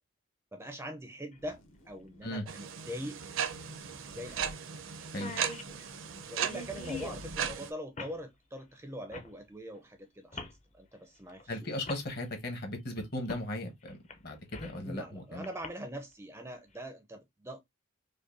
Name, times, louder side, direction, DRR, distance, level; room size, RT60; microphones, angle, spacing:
voice 1, 0.5-3.2 4.1-4.6 6.3-11.7 14.8-17.6, equal, 10° right, 0.4 m, -43 dB
sound 1, 1.3-1.4 3.2-3.3 3.6-3.7 4.3-4.5 4.8-4.9 5.0-7.2 8.0-8.2 9.1-9.3 10.3-10.6 11.4-11.5 11.8-12.0 13.3-13.5 13.9-14.8 15.4-15.7, left 3 dB, 30° left, 0.6 m, -43 dB
sound 2, 1.4-2.5 3.2-4.5 5.4-5.5 5.7-7.7, equal, 70° left, 0.9 m, -53 dB
sound 3, 2.5-7.7, right 8 dB, 65° right, 0.5 m, -37 dB
voice 2, 11.5-14.0 14.2-15.5, left 1 dB, 50° left, 1.1 m, -37 dB
5.1 x 2.2 x 2.6 m
head